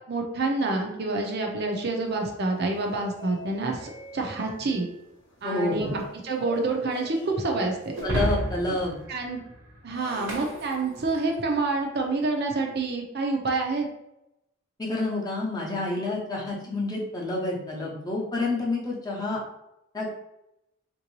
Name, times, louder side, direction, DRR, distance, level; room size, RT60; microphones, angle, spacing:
voice 1, 0.0-4.9 5.4-7.9 9.1-9.4 9.8-13.9, right 3 dB, 50° right, 2 dB, 0.6 m, -28 dB
sound 1, 2.0-9.0, right 1 dB, 65° left, 0.7 m, -44 dB
voice 2, 5.4-5.9 8.0-9.0 14.8-19.4 19.9-20.1, left 2 dB, 20° left, -3 dB, 0.7 m, -28 dB
Shatter, 7.9-11.4, equal, 70° right, 0.9 m, -32 dB
3.7 x 2.6 x 3.0 m, 0.85 s
head